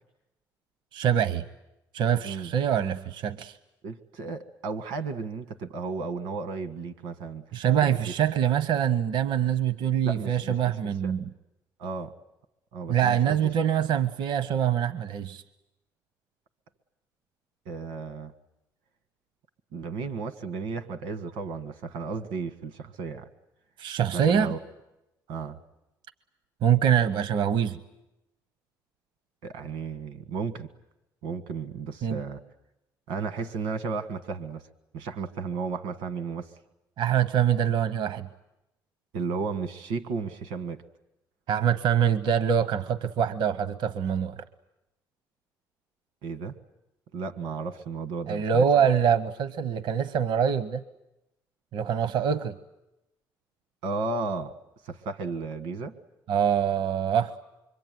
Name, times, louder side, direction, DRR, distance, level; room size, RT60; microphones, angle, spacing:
voice 1, 0.9-1.4 1.9-3.6 7.5-11.3 12.9-15.4 23.8-24.5 26.6-27.8 32.0-32.2 37.0-38.3 41.5-44.4 48.3-50.8 51.7-52.6 56.3-57.4, right 8 dB, 70° right, 14 dB, 0.9 m, -24 dB
voice 2, 3.8-7.5 7.8-8.0 10.0-10.7 11.0-11.1 11.8-12.1 12.7-13.5 17.6-18.3 19.7-23.3 24.1-24.6 25.3-25.6 29.4-30.7 31.2-32.4 33.1-34.7 34.9-36.5 39.1-40.8 46.2-46.6 47.1-48.6 53.8-54.5 54.8-56.0, right 4 dB, 85° right, 10 dB, 1.6 m, -34 dB
25.5 x 24.0 x 9.3 m, 0.93 s
cardioid pair, 90°, 8 cm